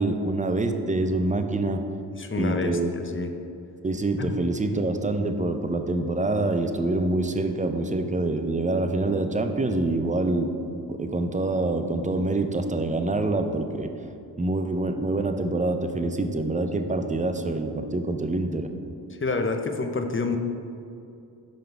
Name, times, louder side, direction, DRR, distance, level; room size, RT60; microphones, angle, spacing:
voice 1, 0.0-1.8 2.4-2.9 3.8-10.5 10.9-13.9 14.4-18.7, right 2 dB, 20° right, 6 dB, 0.5 m, -26 dB
voice 2, 2.1-3.3 4.2-4.4 19.1-20.4, left 3 dB, 30° left, 5 dB, 0.6 m, -28 dB
5.2 x 3.8 x 5.8 m, 2.6 s
cardioid pair, 55°, 43 cm